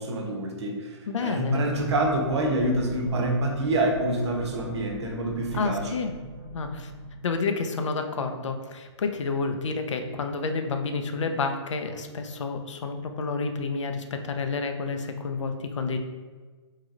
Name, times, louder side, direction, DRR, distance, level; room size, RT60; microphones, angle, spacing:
voice 1, 0.0-5.9, right 1 dB, 70° right, 1 dB, 0.7 m, -27 dB
voice 2, 1.1-1.6 5.5-6.2 6.5-6.9 7.2-16.0, left 4 dB, 85° left, 6 dB, 0.4 m, -29 dB
sound 1, 1.6-7.1, left 1 dB, 15° left, 0.4 m, -42 dB
3.0 x 2.7 x 2.4 m, 1.4 s
hypercardioid pair, 145°, 15 cm